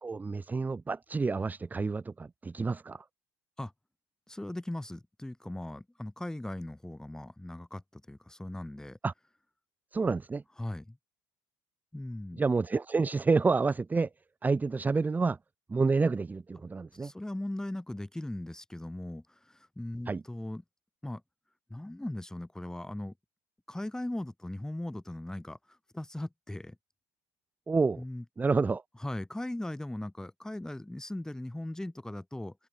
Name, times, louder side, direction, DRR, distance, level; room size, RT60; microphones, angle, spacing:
voice 1, 0.0-3.0 9.0-9.1 9.9-10.4 12.4-14.1 14.4-15.4 15.7-17.1 20.1-20.2 27.7-28.0 28.4-28.8, right 4 dB, 20° right, 1.0 m, -28 dB
voice 2, 4.3-9.0 10.6-11.0 11.9-12.4 17.0-20.6 21.0-21.2 21.7-23.1 23.7-26.8 28.0-28.2 28.6-32.6, left 1 dB, 5° left, 5.7 m, -39 dB
supercardioid pair, 85°, 9 cm